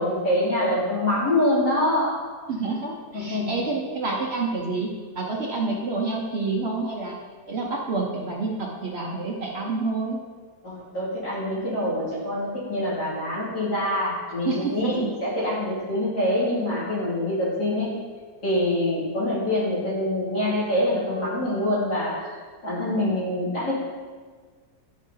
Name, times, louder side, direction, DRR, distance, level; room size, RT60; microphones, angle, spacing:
voice 1, 0.0-2.2 3.1-3.6 10.6-17.9 18.4-22.3 22.6-23.7, left 1 dB, 85° left, -9 dB, 3.0 m, -25 dB
voice 2, 2.5-4.9 5.2-7.2 7.5-10.2 14.4-15.1, right 3 dB, 55° right, -2 dB, 0.8 m, -28 dB
10.0 x 5.1 x 2.7 m, 1.5 s
omnidirectional pair, 1.7 m